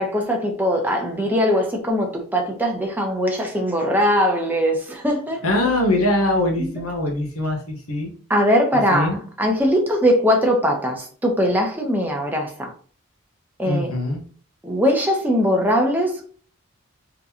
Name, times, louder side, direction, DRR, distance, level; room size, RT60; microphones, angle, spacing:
voice 1, 0.0-5.7 6.6-6.7 8.3-12.7 13.6-13.9 14.6-16.2, equal, 10° right, 0.8 m, -21 dB
voice 2, 5.4-8.1 8.7-9.2 13.6-14.2, left 1 dB, 80° left, 1.1 m, -22 dB
4.0 x 3.7 x 2.8 m
head